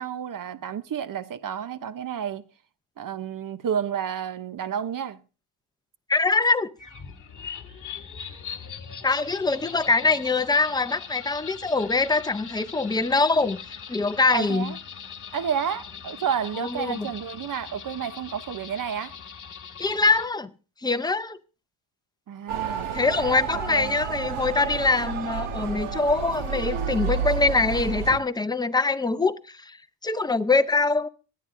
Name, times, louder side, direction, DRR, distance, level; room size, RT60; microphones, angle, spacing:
voice 1, 0.0-2.4 3.0-5.2 14.3-14.8 15.3-19.1 22.3-22.9 23.7-24.0, right 8 dB, 40° right, 0.7 m, -30 dB
voice 2, 6.1-6.7 9.0-13.6 13.9-14.7 16.6-17.1 19.8-20.5 20.8-21.4 22.9-29.8 30.0-31.1, left 3 dB, 10° left, 0.5 m, -23 dB
sound 1, 6.8-20.3, left 6 dB, 35° left, 1.9 m, -41 dB
Motor vehicle (road) / Siren, 22.5-28.2, right 6 dB, 75° right, 1.3 m, -30 dB
24.5 x 9.4 x 2.5 m
cardioid pair, 120°, 49 cm